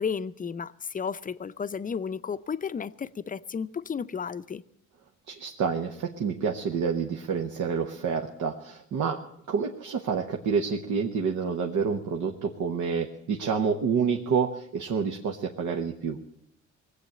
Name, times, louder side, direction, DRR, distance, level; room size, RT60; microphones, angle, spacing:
voice 1, 0.0-4.6, left 6 dB, 25° left, 0.5 m, -33 dB
voice 2, 5.3-9.2 9.5-16.2, right 6 dB, 75° right, 1.1 m, -28 dB
19.0 x 8.1 x 8.7 m
cardioid pair, 90°, 30 cm